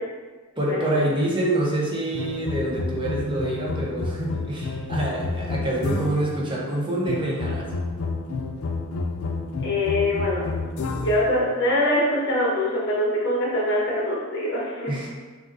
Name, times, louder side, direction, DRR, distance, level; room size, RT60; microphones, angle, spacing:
voice 1, 0.6-7.7 14.9-15.1, right 1 dB, 25° right, -4 dB, 0.8 m, -26 dB
sound 1, 2.1-6.4 7.0-11.3, left 3 dB, 90° left, 0.4 m, -30 dB
voice 2, 9.6-10.4 10.9-14.9, left 1 dB, 55° left, -5 dB, 1.2 m, -23 dB
6.3 x 2.6 x 2.6 m, 1.3 s
head